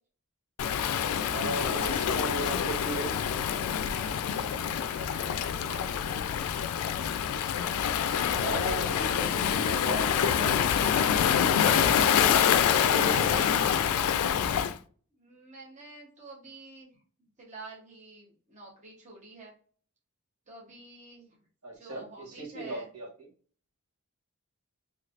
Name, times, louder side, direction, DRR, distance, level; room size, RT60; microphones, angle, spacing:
Waves surf, 0.6-14.7, left 8 dB, 80° left, 0.3 m, -26 dB
voice 1, 1.3-3.2 8.3-10.6 12.0-12.4 12.7-13.5 21.6-23.1, right 2 dB, 80° right, -2 dB, 1.4 m, -37 dB
voice 2, 4.4-6.3 15.1-17.0 17.4-19.5 20.5-21.4 21.7-22.9, right 2 dB, 35° right, -4 dB, 1.0 m, -49 dB
3.2 x 3.1 x 2.5 m, 0.43 s
head